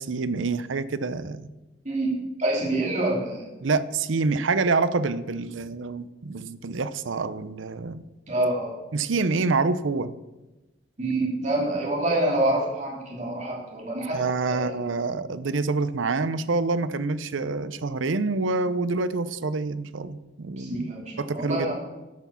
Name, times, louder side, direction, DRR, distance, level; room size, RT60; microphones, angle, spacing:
voice 1, 0.0-1.5 3.6-8.0 8.9-10.1 14.1-20.9 21.2-21.8, right 3 dB, 80° right, 15 dB, 0.6 m, -27 dB
voice 2, 2.4-3.5 8.3-8.8 11.0-14.2 14.5-14.8 20.6-21.8, right 1 dB, 35° right, -2 dB, 3.0 m, -26 dB
10.5 x 6.1 x 7.0 m, 1.1 s
head